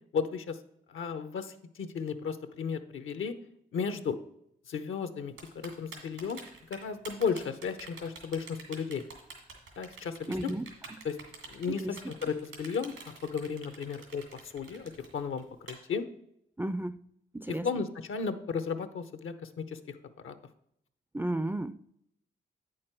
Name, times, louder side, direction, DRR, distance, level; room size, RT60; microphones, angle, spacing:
voice 1, 0.1-0.6 0.9-3.3 3.7-4.2 4.7-6.4 6.7-9.1 9.8-10.5 11.0-11.2 11.5-12.9 13.2-16.1 17.5-20.0 20.2-20.3, left 6 dB, 75° left, 11 dB, 0.8 m, -34 dB
Typing, 5.4-15.7, right 4 dB, 85° right, 2.3 m, -47 dB
voice 2, 10.3-10.7 11.7-11.9 16.6-17.0 17.3-17.8 21.1-21.8, right 1 dB, 10° right, 15 dB, 0.4 m, -33 dB
8.7 x 6.3 x 4.5 m, 0.75 s
supercardioid pair, 45°, 21 cm